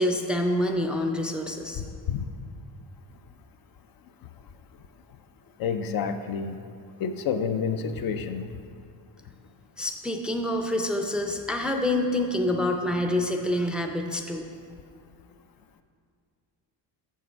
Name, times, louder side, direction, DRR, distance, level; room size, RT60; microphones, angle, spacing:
voice 1, 0.0-1.8 9.8-14.5, left 1 dB, ahead, 2 dB, 0.5 m, -27 dB
voice 2, 1.8-2.3 5.6-6.6 7.0-8.6, left 6 dB, 50° left, 8 dB, 0.5 m, -29 dB
6.6 x 6.4 x 4.5 m, 2.3 s
cardioid pair, 90°, 46 cm